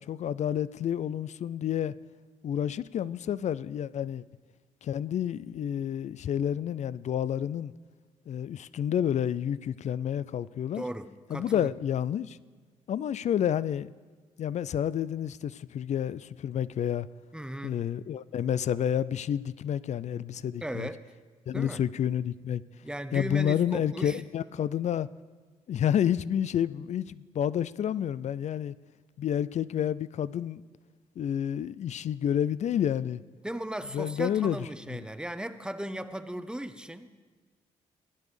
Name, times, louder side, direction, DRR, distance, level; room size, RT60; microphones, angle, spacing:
voice 1, 0.0-1.9 2.4-4.2 4.8-7.7 8.3-10.8 11.3-12.4 12.9-13.9 14.4-17.1 17.6-20.9 21.5-22.6 23.1-25.1 25.7-28.7 29.2-30.6 31.2-33.2 33.9-35.0, left 9 dB, 50° left, 18 dB, 0.4 m, -29 dB
voice 2, 10.7-11.7 17.3-17.8 20.6-21.0 21.5-21.8 22.8-24.2 33.4-37.1, right 1 dB, 5° right, 11 dB, 0.7 m, -37 dB
17.0 x 10.5 x 3.3 m, 1.4 s
hypercardioid pair, 45°, 15 cm